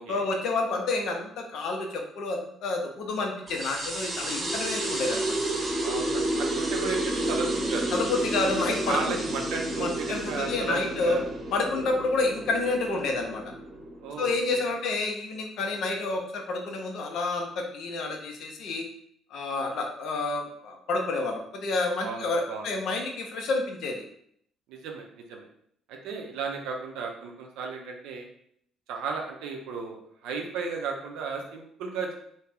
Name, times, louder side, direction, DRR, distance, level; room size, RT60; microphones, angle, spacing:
voice 1, 0.1-5.4 7.9-9.2 9.8-11.2 11.5-13.4 14.2-18.8 19.3-24.0, left 3 dB, 60° left, 2 dB, 0.5 m, -29 dB
sound 1, 3.5-14.5, right 1 dB, 35° right, 0.8 m, -31 dB
voice 2, 5.8-7.9 8.9-11.2 14.0-14.3 22.0-22.7 24.7-25.5 25.9-28.3 28.9-32.2, right 5 dB, 65° right, 2 dB, 0.5 m, -34 dB
2.4 x 2.1 x 3.3 m, 0.67 s
figure-of-eight pair, 50°, 0 cm